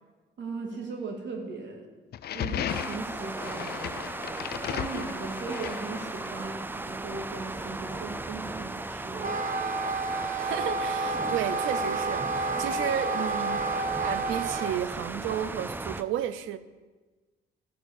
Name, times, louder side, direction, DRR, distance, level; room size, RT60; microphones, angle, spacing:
voice 1, 0.4-1.9 2.3-3.9 4.7-9.4, right 4 dB, 65° right, 2 dB, 2.3 m, -38 dB
sound 1, 2.1-6.5, left 11 dB, 55° left, 0.4 m, -36 dB
sound 2, 2.7-16.0, right 2 dB, 10° right, 0.4 m, -37 dB
Wind instrument woodwind instrument, 9.1-14.8, right 3 dB, 40° right, 0.7 m, -30 dB
voice 2, 10.4-16.6, right 10 dB, 90° right, 13 dB, 0.6 m, -33 dB
12.5 x 4.6 x 8.2 m, 1.3 s
cardioid pair, 90°, 20 cm